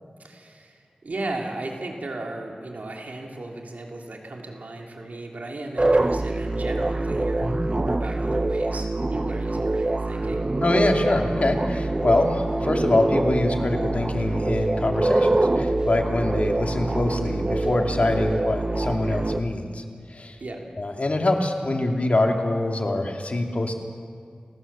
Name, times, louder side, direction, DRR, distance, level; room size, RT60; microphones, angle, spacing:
voice 1, 0.2-10.4 20.4-20.6, right 2 dB, 80° right, 0 dB, 3.3 m, -35 dB
sound 1, 5.8-19.4, right 2 dB, 30° right, 0.6 m, -25 dB
voice 2, 10.6-19.8 20.1-20.4 20.8-23.7, left 2 dB, 55° left, 3 dB, 2.5 m, -24 dB
29.0 x 16.0 x 7.0 m, 2.2 s
wide cardioid pair, 50°, 3 cm